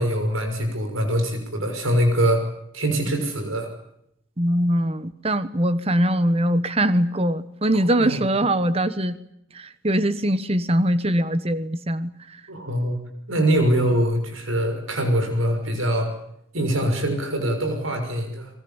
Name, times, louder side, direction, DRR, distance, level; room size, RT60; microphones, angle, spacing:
voice 1, 0.0-2.4 2.7-3.7 7.7-8.2 12.5-13.0 13.3-16.1 16.5-18.5, right 1 dB, 80° right, 5 dB, 6.1 m, -23 dB
voice 2, 4.4-9.2 9.5-12.1, right 1 dB, 30° right, 13 dB, 1.2 m, -22 dB
29.5 x 23.0 x 7.2 m, 0.77 s
head